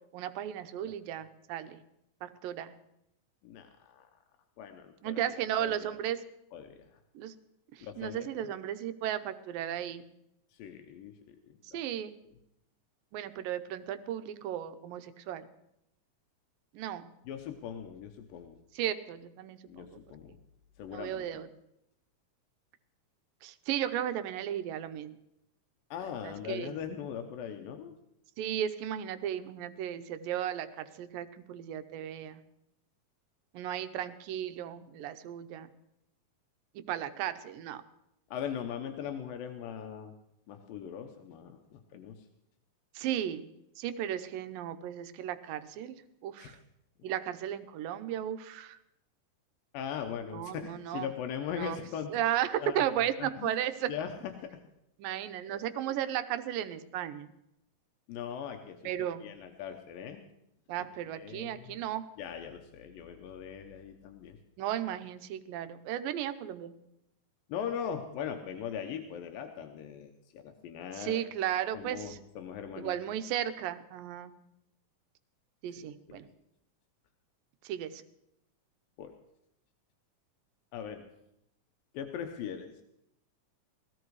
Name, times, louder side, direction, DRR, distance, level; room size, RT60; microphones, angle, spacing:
voice 1, 0.1-1.8 2.2-2.7 5.0-6.2 7.2-7.3 7.7-10.1 11.6-12.2 13.1-15.4 16.7-17.1 18.7-20.0 20.9-21.5 23.4-25.2 26.2-26.8 28.4-32.4 33.5-35.7 36.9-37.8 42.9-43.5 43.8-46.6 47.0-48.8 50.3-51.1 51.5-51.8 52.1-53.9 55.0-57.3 58.8-59.3 60.7-62.1 64.6-66.7 70.9-72.2 72.8-74.3 75.6-76.3 77.6-78.0, right 11 dB, 85° right, 10 dB, 2.6 m, -35 dB
voice 2, 3.4-4.1 4.6-5.2 5.6-6.0 6.5-6.9 7.8-8.5 10.5-11.8 17.3-18.6 19.7-20.4 20.8-21.3 25.9-28.0 38.3-40.1 40.5-42.3 46.4-46.6 49.7-52.1 52.6-52.9 53.2-53.5 53.9-54.1 54.4-54.6 55.4-55.6 55.9-56.0 58.1-58.8 59.2-60.2 60.8-60.9 61.2-61.8 62.2-64.4 67.5-71.2 71.7-72.9 75.8-76.2 79.0-79.1 80.7-81.1 81.9-82.7, left 8 dB, 90° left, 5 dB, 2.8 m, -40 dB
19.5 x 15.0 x 4.8 m, 0.80 s
omnidirectional pair, 3.9 m